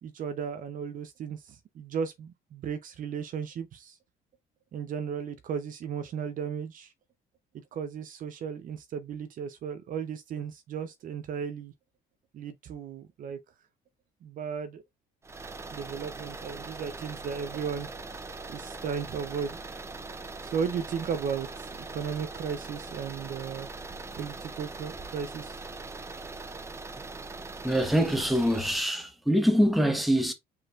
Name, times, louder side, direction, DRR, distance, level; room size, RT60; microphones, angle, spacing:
voice 1, 0.0-4.0 4.7-6.9 7.5-11.7 12.3-13.4 14.2-14.8 15.7-17.9 18.4-19.6 20.4-23.7 24.2-25.6, right 7 dB, 55° right, 0.7 m, -35 dB
sound 1, 15.2-28.9, right 3 dB, 15° right, 0.6 m, -41 dB
voice 2, 27.6-30.3, equal, ahead, 1.2 m, -24 dB
5.3 x 4.0 x 2.5 m
cardioid pair, 110°, 17 cm